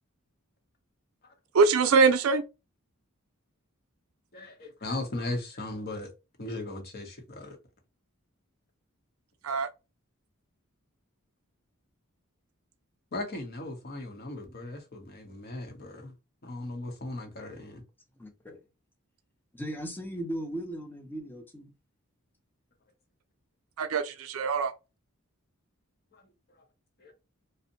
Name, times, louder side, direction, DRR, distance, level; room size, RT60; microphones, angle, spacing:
voice 1, 1.5-2.4 9.4-9.7 23.8-24.7, right 4 dB, 75° right, 0.4 m, -23 dB
voice 2, 4.3-6.1 6.4-7.6 13.1-16.1 16.4-17.8 26.1-26.3 27.0-27.1, left 2 dB, 45° left, 0.8 m, -37 dB
voice 3, 18.2-18.6 19.5-21.7, right 1 dB, 10° left, 0.5 m, -37 dB
2.5 x 2.1 x 2.7 m
head